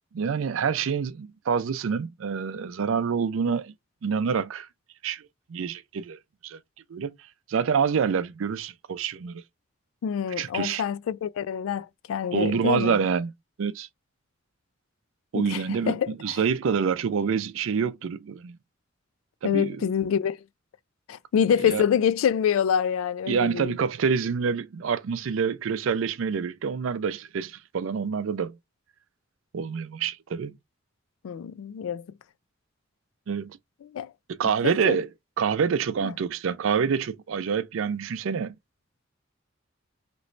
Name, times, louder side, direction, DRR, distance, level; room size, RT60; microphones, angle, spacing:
voice 1, 0.1-3.7 4.0-4.7 5.0-6.6 6.9-7.1 7.5-9.4 10.4-10.8 12.3-13.3 13.6-13.9 15.3-18.6 19.4-19.9 21.4-21.8 23.3-28.6 29.5-30.5 33.3-33.6 34.3-35.1 35.4-38.5, right 6 dB, 70° right, 0.4 m, -27 dB
voice 2, 10.0-13.0 15.3-16.4 19.4-20.4 21.1-23.7 31.2-32.1 33.9-34.1 34.6-35.0 36.0-36.1, left 8 dB, 80° left, 0.3 m, -26 dB
3.0 x 3.0 x 2.5 m
head